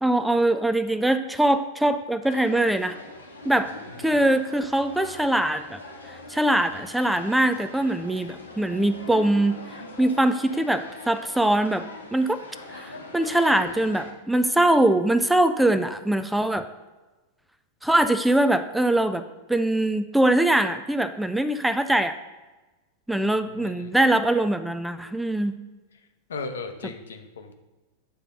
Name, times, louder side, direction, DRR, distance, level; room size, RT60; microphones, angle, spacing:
voice 1, 0.0-3.0 3.5-3.7 4.0-5.8 6.3-9.6 10.0-11.8 12.1-12.4 12.7-16.6 17.8-19.2 19.5-22.1 23.1-25.6, right 1 dB, 5° right, 11 dB, 0.3 m, -22 dB
sound 1, 2.2-14.1, left 2 dB, 80° left, 1.1 m, -42 dB
voice 2, 3.8-4.2 23.5-23.9 26.3-27.5, left 4 dB, 65° left, 6 dB, 0.7 m, -37 dB
9.0 x 4.0 x 5.5 m, 1.2 s
figure-of-eight pair, 90°, 0 cm